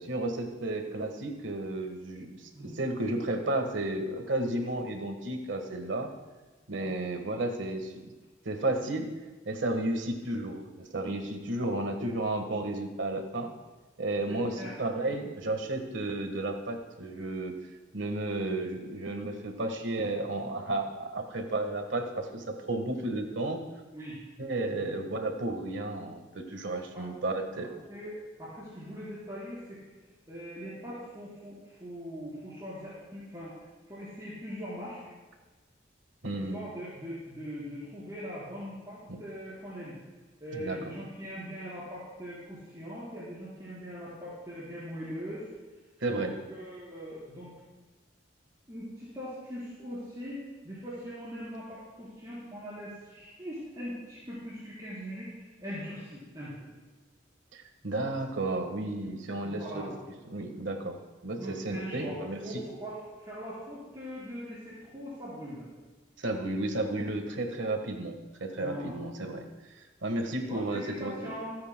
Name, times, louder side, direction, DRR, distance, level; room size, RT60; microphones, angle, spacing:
voice 1, 0.0-6.1 6.7-8.1 8.4-9.1 9.4-13.5 14.0-17.5 17.9-23.6 24.4-27.7 36.2-36.6 39.1-39.2 40.5-40.9 46.0-46.3 57.5-59.9 60.3-61.0 61.2-62.6 66.2-68.1 68.4-69.5 70.0-71.1, right 2 dB, 75° right, 5 dB, 1.5 m, -33 dB
voice 2, 14.3-14.7 23.9-24.3 26.9-27.1 27.9-28.1 28.4-29.8 30.3-33.5 33.9-35.0 36.4-40.0 40.4-45.5 46.2-47.5 48.7-56.7 59.4-60.0 61.2-65.7 68.6-69.0 70.5-71.6, equal, 20° right, -11 dB, 4.1 m, -41 dB
28.0 x 9.6 x 2.2 m, 1.2 s
head